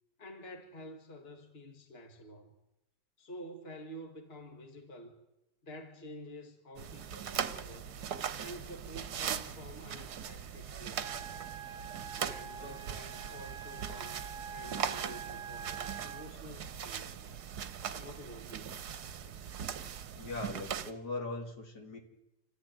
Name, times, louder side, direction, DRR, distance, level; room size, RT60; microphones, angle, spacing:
voice 1, 0.2-2.5 3.2-5.2 5.6-7.9 8.4-11.4 12.1-17.1 17.9-18.7, equal, 35° left, 2.3 m, -49 dB
sound 1, 6.8-20.9, right 8 dB, 65° right, 1.5 m, -40 dB
Wind instrument woodwind instrument, 11.0-16.3, right 7 dB, 35° right, 1.1 m, -46 dB
voice 2, 20.1-22.0, left 2 dB, 65° left, 3.0 m, -40 dB
26.5 x 14.5 x 9.1 m
omnidirectional pair, 1.9 m